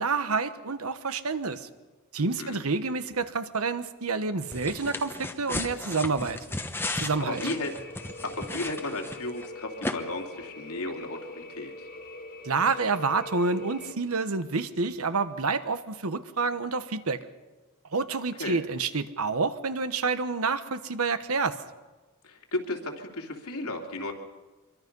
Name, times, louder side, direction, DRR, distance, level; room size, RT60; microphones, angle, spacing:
voice 1, 0.0-1.7 2.1-6.4 7.0-7.4 12.4-17.2 17.9-21.6, right 4 dB, 80° right, 11 dB, 1.2 m, -28 dB
voice 2, 2.2-2.6 6.9-7.7 8.2-11.9 18.4-18.6 22.2-24.1, left 2 dB, 80° left, 1 dB, 3.0 m, -34 dB
sound 1, 4.5-9.5 9.8-9.9, left 2 dB, 10° left, 1.1 m, -35 dB
sound 2, 7.1-13.9, left 2 dB, 40° left, 2.1 m, -43 dB
25.0 x 23.0 x 5.5 m, 1.2 s
head